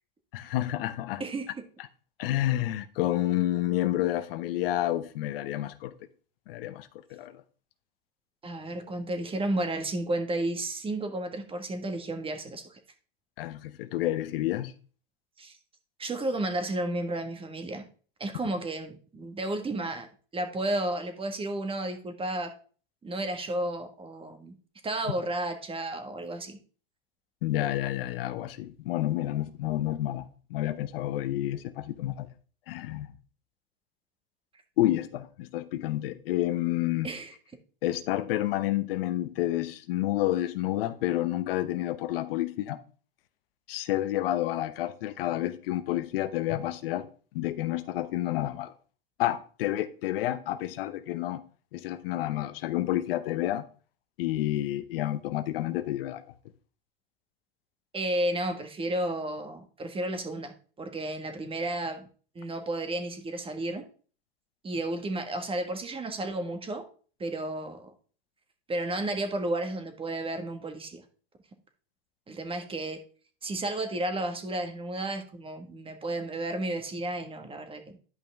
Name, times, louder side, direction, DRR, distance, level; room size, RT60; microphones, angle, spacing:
voice 1, 0.3-1.2 2.2-5.9 6.5-7.4 13.4-14.7 27.4-30.2 30.5-32.3 32.7-33.1 34.8-37.1 37.8-42.8 43.7-47.1 47.3-48.8 49.2-51.4 51.7-53.7 54.2-56.2, left 14 dB, 70° left, 0.9 m, -29 dB
voice 2, 1.2-1.5 8.4-12.8 15.4-15.6 16.0-17.9 18.2-20.1 20.3-22.5 23.0-24.5 24.8-26.6 37.0-37.3 57.9-62.1 62.3-63.8 64.6-66.9 67.2-67.8 68.7-71.0 72.3-73.0 73.4-78.0, right 1 dB, 20° right, 1.6 m, -32 dB
11.0 x 5.4 x 3.5 m
hypercardioid pair, 115°, 29 cm